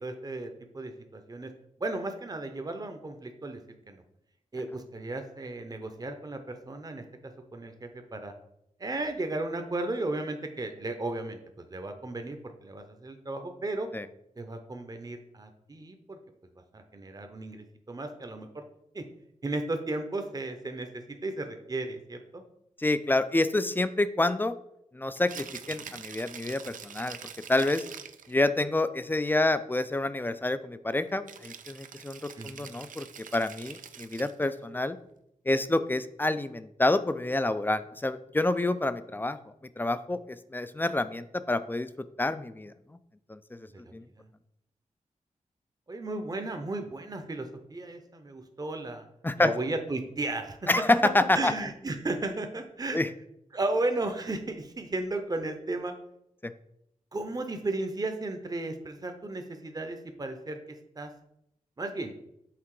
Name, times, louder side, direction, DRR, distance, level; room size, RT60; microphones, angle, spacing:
voice 1, 0.0-1.5 1.8-3.6 3.9-4.0 4.5-8.3 8.8-12.4 12.6-13.9 14.4-16.2 16.7-18.6 18.9-19.0 19.4-20.9 21.2-22.4 25.8-25.9 32.4-32.7 43.8-44.3 45.9-49.0 49.4-50.6 51.3-53.0 53.5-55.9 57.1-60.6 61.0-61.1 61.8-62.1, right 2 dB, 30° right, 6 dB, 0.7 m, -34 dB
voice 2, 22.8-24.5 24.9-27.2 27.5-27.8 28.3-33.1 33.3-35.0 35.5-39.4 39.8-41.9 42.2-42.7 43.3-43.7 43.9-44.0 49.2-49.5 50.7-51.5 52.9-53.1 56.4-56.5, left 2 dB, 15° left, 13 dB, 0.4 m, -28 dB
Rattle (instrument), 25.2-28.3 31.3-34.5, right 7 dB, 80° right, 0.4 m, -45 dB
5.9 x 3.5 x 4.8 m, 0.80 s
cardioid pair, 65°, 13 cm